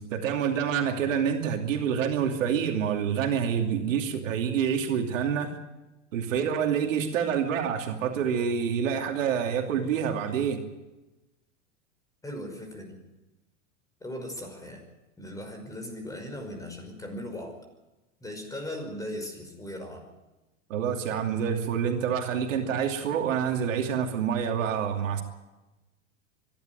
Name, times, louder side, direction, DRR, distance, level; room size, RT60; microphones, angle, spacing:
voice 1, 0.0-5.6 6.1-10.6 20.7-25.2, right 7 dB, 80° right, 4 dB, 2.8 m, -27 dB
voice 2, 12.2-13.0 14.0-14.8 15.2-17.6 18.2-20.0, left 1 dB, 10° left, 5 dB, 5.4 m, -38 dB
24.5 x 12.0 x 9.3 m, 1.1 s
hypercardioid pair, 120°, 39 cm